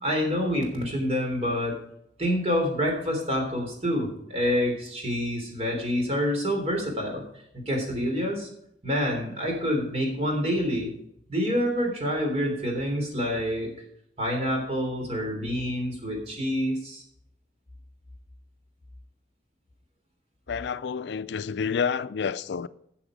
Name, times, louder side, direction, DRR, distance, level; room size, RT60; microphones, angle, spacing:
voice 1, 0.0-1.8 2.2-7.2 7.5-8.5 8.8-10.9 11.3-13.7 14.2-17.0, equal, 35° right, 3.3 m, -27 dB
voice 2, 20.5-22.7, left 6 dB, 75° left, 0.4 m, -29 dB
12.5 x 7.0 x 5.0 m
head